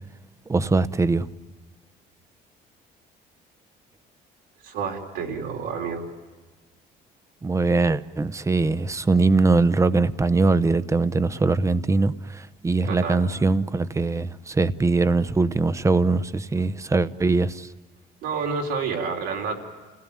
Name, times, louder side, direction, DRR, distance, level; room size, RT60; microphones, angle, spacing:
voice 1, 0.5-1.3 7.4-17.7, right 3 dB, 20° right, 0.8 m, -22 dB
voice 2, 4.6-6.1 12.8-13.2 18.2-19.6, right 5 dB, 90° right, 4.0 m, -29 dB
29.5 x 17.0 x 8.8 m
cardioid pair, 110°, 17 cm